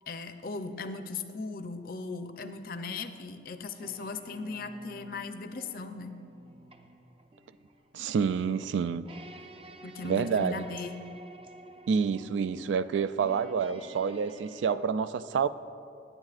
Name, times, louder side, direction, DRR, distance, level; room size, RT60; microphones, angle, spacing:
voice 1, 0.1-6.1 9.8-11.0, left 4 dB, 50° left, 0.6 m, -38 dB
sound 1, 3.8-14.7, right 2 dB, 30° right, 0.5 m, -51 dB
voice 2, 7.9-9.0 10.0-10.6 11.9-15.5, right 6 dB, 90° right, 0.3 m, -28 dB
17.0 x 11.0 x 2.5 m
head